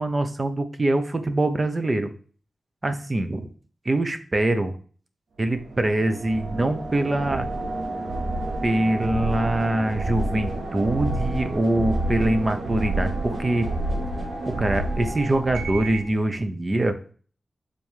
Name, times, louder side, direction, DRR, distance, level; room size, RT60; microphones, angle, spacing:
voice 1, 0.0-2.1 2.8-3.5 3.8-4.7 5.4-7.5 8.6-13.7 14.5-17.0, right 1 dB, 30° right, 8 dB, 1.0 m, -24 dB
sound 1, 5.5-16.1, right 2 dB, 90° right, 1.7 m, -29 dB
7.4 x 4.4 x 4.8 m, 0.41 s
wide cardioid pair, 105°, 0 cm